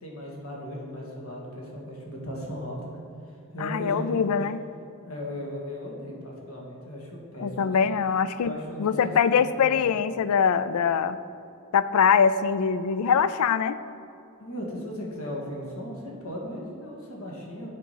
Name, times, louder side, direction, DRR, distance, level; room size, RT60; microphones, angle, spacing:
voice 1, 0.0-3.0 3.5-4.4 5.1-8.0 8.4-9.8 14.4-17.7, equal, 70° left, -2 dB, 1.8 m, -37 dB
voice 2, 3.6-4.6 7.4-8.5 8.8-11.2 11.7-13.8, left 6 dB, 90° left, 14 dB, 0.4 m, -23 dB
8.3 x 4.9 x 5.7 m, 2.6 s
head